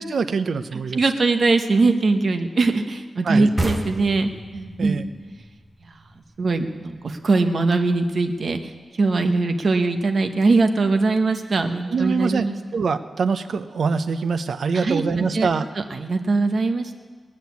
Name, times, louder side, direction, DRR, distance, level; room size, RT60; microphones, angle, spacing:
voice 1, 0.0-1.0 3.2-3.5 4.8-5.1 11.9-12.5 12.7-15.7, right 5 dB, 65° right, 10 dB, 0.7 m, -24 dB
voice 2, 0.7-5.0 6.4-8.7 9.0-12.5 14.7-15.0 15.3-15.5 15.8-16.9, right 3 dB, 50° right, 6 dB, 1.1 m, -21 dB
sound 1, 3.6-7.0, right 1 dB, 15° right, 1.2 m, -31 dB
19.5 x 6.6 x 9.4 m, 1.5 s
wide cardioid pair, 145°, 0 cm